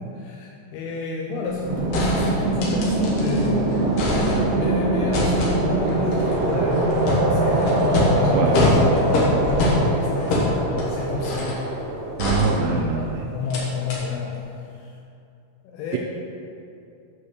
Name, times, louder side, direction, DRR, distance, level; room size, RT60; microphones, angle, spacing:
voice 1, 0.0-3.8 4.5-11.6 12.6-14.4 14.7-14.9 15.6-16.0, left 4 dB, 85° left, -2 dB, 2.3 m, -30 dB
sound 1, 1.5-1.6 1.9-3.5 3.8-4.7 5.1-11.7 12.2-13.0 13.5-13.6 13.9-14.0, left 2 dB, 65° left, 2.4 m, -24 dB
sound 2, 1.6-12.2, right 2 dB, 65° right, 1.5 m, -23 dB
voice 2, 12.2-13.2, right 5 dB, 80° right, 1 dB, 2.7 m, -23 dB
8.6 x 4.2 x 6.7 m, 2.6 s
omnidirectional pair, 5.3 m